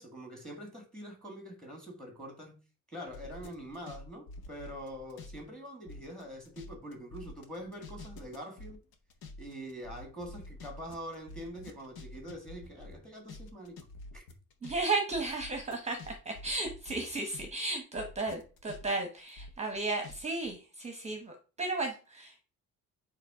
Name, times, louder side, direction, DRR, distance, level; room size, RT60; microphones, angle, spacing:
voice 1, 0.0-2.6 2.9-8.8 9.4-13.8 14.1-14.3, equal, ahead, 1.6 m, -44 dB
sound 1, 3.1-5.4 5.7-17.5 17.8-20.2 20.4-20.5, left 2 dB, 90° left, 1.4 m, -48 dB
voice 2, 14.6-22.4, right 3 dB, 20° right, 0.9 m, -34 dB
9.3 x 3.1 x 4.8 m
cardioid pair, 160°, 34 cm